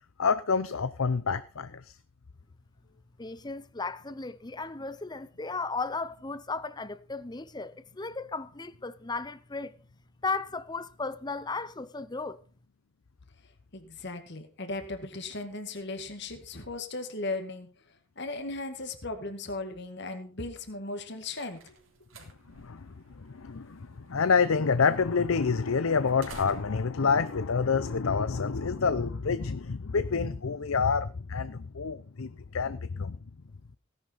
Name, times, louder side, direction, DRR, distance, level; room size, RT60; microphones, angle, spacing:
voice 1, 0.2-1.9 22.6-33.2, left 5 dB, 80° left, 0.7 m, -28 dB
voice 2, 3.2-9.8 10.2-12.4, left 3 dB, 20° left, 0.7 m, -35 dB
voice 3, 13.7-17.7 18.2-21.7, left 2 dB, 55° left, 2.0 m, -37 dB
sound 1, 20.9-28.4, right 3 dB, 70° right, 3.6 m, -54 dB
17.0 x 11.0 x 4.1 m
head